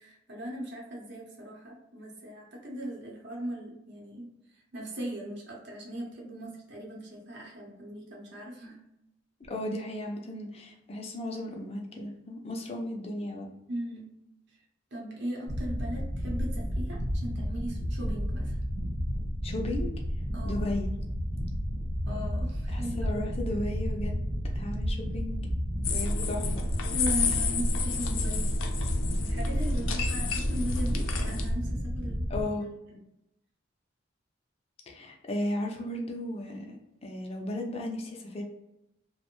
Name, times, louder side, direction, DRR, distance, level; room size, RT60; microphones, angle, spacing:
voice 1, 0.0-8.8 13.7-14.1 14.9-18.6 20.3-20.7 22.1-23.2 26.9-28.6 29.2-32.5, equal, 60° right, -2 dB, 0.8 m, -39 dB
voice 2, 9.5-13.5 19.4-19.9 20.4-20.9 22.7-24.2 24.5-25.5 25.9-26.7 32.3-32.6 34.9-38.4, left 1 dB, 30° left, 1 dB, 0.5 m, -35 dB
sound 1, 15.5-32.4, equal, 40° right, 1.0 m, -32 dB
sound 2, 25.8-31.5, left 3 dB, 90° left, 0.4 m, -30 dB
2.5 x 2.1 x 2.9 m, 0.86 s
head